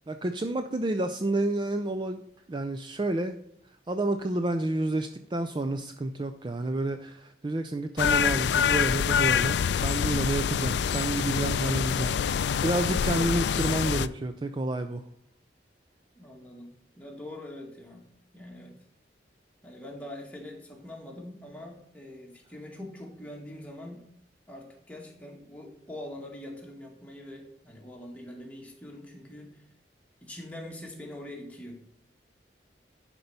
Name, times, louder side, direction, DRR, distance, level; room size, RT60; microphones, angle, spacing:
voice 1, 0.1-2.2 2.5-3.4 3.9-15.0, right 2 dB, 25° right, 7 dB, 0.4 m, -30 dB
sound 1, 8.0-14.1, left 7 dB, 70° left, 0.3 m, -26 dB
voice 2, 10.5-10.9 16.2-18.1 18.3-18.7 19.6-24.0 24.5-29.6 30.2-31.9, left 1 dB, 10° left, 0 dB, 1.7 m, -43 dB
10.5 x 4.5 x 5.4 m, 0.70 s
head